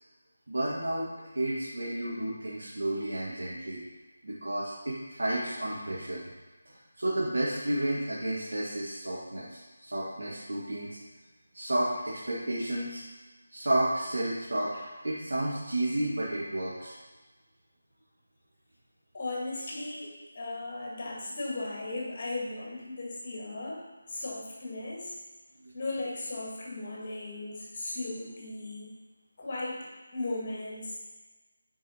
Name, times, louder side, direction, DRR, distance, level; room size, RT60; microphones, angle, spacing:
voice 1, 0.5-3.8 4.2-6.3 6.6-10.9 11.5-13.0 13.5-16.9 25.6-25.7, right 1 dB, 65° right, -7 dB, 1.4 m, -32 dB
voice 2, 19.1-25.2 25.7-28.9 29.4-31.0, left 2 dB, 35° left, -3 dB, 1.5 m, -37 dB
9.3 x 4.7 x 2.8 m, 1.2 s
figure-of-eight pair, 160°, 0 cm